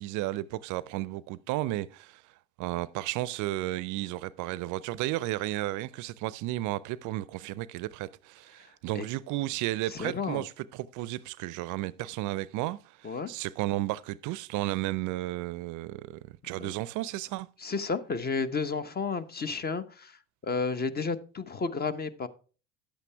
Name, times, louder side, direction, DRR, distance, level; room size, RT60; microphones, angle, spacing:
voice 1, 0.0-2.3 2.6-17.5, right 17 dB, 50° right, 0.5 m, -33 dB
voice 2, 9.9-10.4 13.0-13.3 16.6-16.7 17.6-20.2 20.4-22.3, left 4 dB, 25° left, 0.9 m, -32 dB
10.0 x 8.2 x 3.4 m
hypercardioid pair, 75°, 38 cm